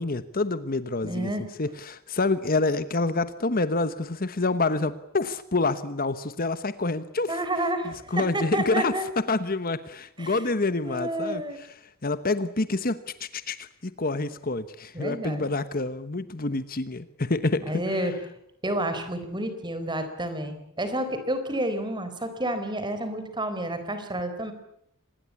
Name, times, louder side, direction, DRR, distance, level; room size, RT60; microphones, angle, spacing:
voice 1, 0.0-1.3 1.6-7.4 7.8-18.1, left 3 dB, 40° left, 12 dB, 1.1 m, -28 dB
voice 2, 1.0-1.4 7.3-9.0 10.2-10.4 10.8-11.6 14.9-15.5 17.7-18.1 18.6-24.5, right 1 dB, 20° right, 9 dB, 4.1 m, -30 dB
26.0 x 20.5 x 8.5 m, 0.75 s
head